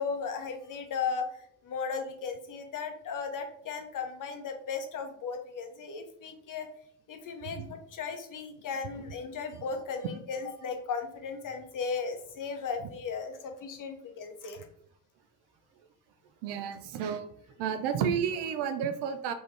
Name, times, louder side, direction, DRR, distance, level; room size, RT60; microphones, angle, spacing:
voice 1, 0.0-6.7 7.1-14.7, left 5 dB, 40° left, 5 dB, 0.7 m, -36 dB
voice 2, 16.4-17.3 17.6-19.3, right 7 dB, 55° right, 9 dB, 0.5 m, -31 dB
3.6 x 2.6 x 3.2 m, 0.68 s
hypercardioid pair, 55°, 49 cm